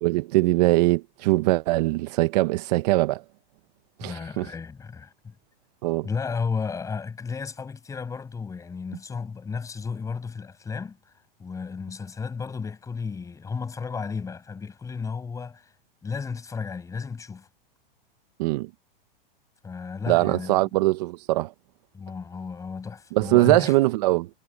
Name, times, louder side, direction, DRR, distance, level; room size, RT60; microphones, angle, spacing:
voice 1, 0.0-3.2 4.0-4.5 5.8-6.1 18.4-18.7 20.1-21.5 23.1-24.3, right 19 dB, 45° right, 0.7 m, -22 dB
voice 2, 4.0-5.3 6.0-11.0 11.4-15.7 16.0-17.5 19.6-20.6 21.9-23.7, left 5 dB, 10° left, 7.3 m, -33 dB
supercardioid pair, 155°, 29 cm